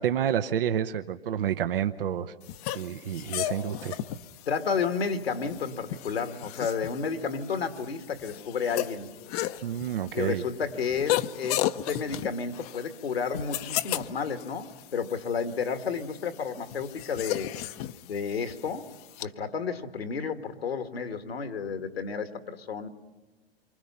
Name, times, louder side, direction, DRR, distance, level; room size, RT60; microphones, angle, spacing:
voice 1, 0.0-2.3 2.7-4.0 9.6-10.4, right 9 dB, 65° right, 9 dB, 1.0 m, -29 dB
sound 1, 2.4-19.3, left 14 dB, 40° left, 0.8 m, -35 dB
voice 2, 4.5-9.1 10.1-17.5 18.0-18.9 19.2-22.9, left 5 dB, 80° left, 8 dB, 2.0 m, -31 dB
28.0 x 24.5 x 5.7 m, 1.2 s
hypercardioid pair, 115°, 30 cm